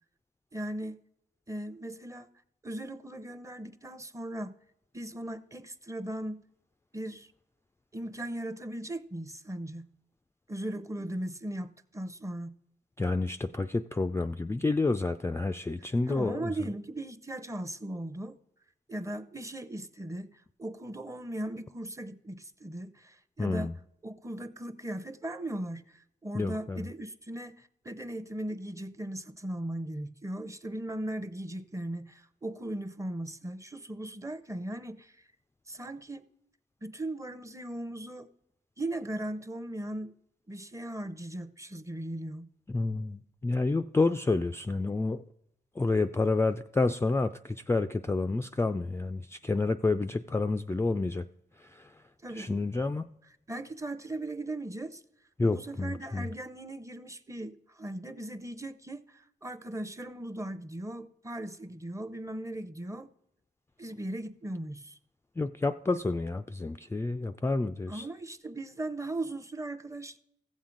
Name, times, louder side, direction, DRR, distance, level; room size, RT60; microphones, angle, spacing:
voice 1, 0.5-1.0 1.5-2.3 2.6-4.6 4.9-6.4 6.9-7.3 7.9-9.9 10.5-12.5 16.1-18.4 18.9-23.7 24.0-35.1 35.7-36.2 36.8-38.3 38.8-40.1 40.5-42.5 52.2-52.5 53.5-55.0 55.5-63.1 63.8-65.0 67.9-70.2, right 1 dB, 15° right, 0.7 m, -38 dB
voice 2, 13.0-16.7 23.4-23.7 26.3-26.8 42.7-45.2 45.8-51.3 51.6-52.0 52.3-53.1 55.4-56.3 65.4-68.1, left 3 dB, 15° left, 0.3 m, -29 dB
15.0 x 7.2 x 3.8 m
supercardioid pair, 45°, 19 cm